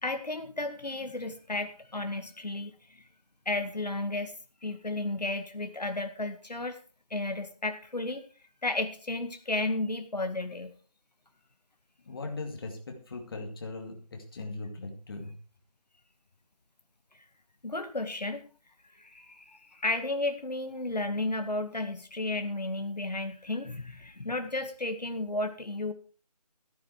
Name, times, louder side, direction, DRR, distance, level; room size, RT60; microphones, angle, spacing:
voice 1, 0.0-3.0 3.5-4.3 4.6-6.8 7.1-8.2 8.6-10.7 17.6-18.5 19.0-25.9, left 2 dB, 90° left, 6 dB, 2.0 m, -33 dB
voice 2, 12.0-15.3, left 3 dB, 35° left, 3 dB, 2.5 m, -39 dB
14.5 x 9.5 x 4.7 m, 0.38 s
figure-of-eight pair, 165°, 21 cm